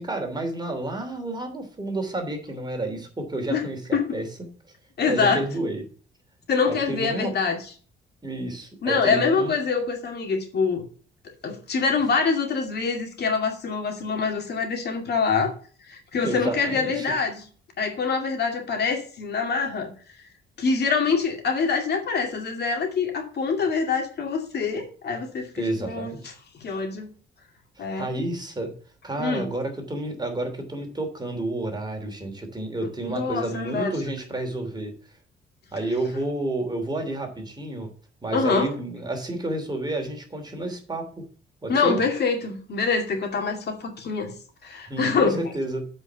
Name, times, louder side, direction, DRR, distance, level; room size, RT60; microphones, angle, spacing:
voice 1, 0.0-4.3 5.1-5.8 6.6-7.3 8.2-9.5 16.2-17.1 25.6-26.3 27.8-28.7 29.0-34.9 35.7-37.9 38.2-41.1 41.6-42.0 44.9-45.8, right 2 dB, 20° right, 5 dB, 2.9 m, -30 dB
voice 2, 5.0-5.4 6.5-7.6 8.8-10.8 11.2-15.5 15.9-17.4 17.8-19.9 20.6-26.1 26.6-27.1 27.8-28.1 29.2-29.5 33.1-33.9 38.3-38.7 41.7-44.3 44.6-45.4, left 5 dB, 55° left, 3 dB, 2.4 m, -25 dB
8.1 x 5.3 x 6.9 m, 0.41 s
cardioid pair, 90°, 20 cm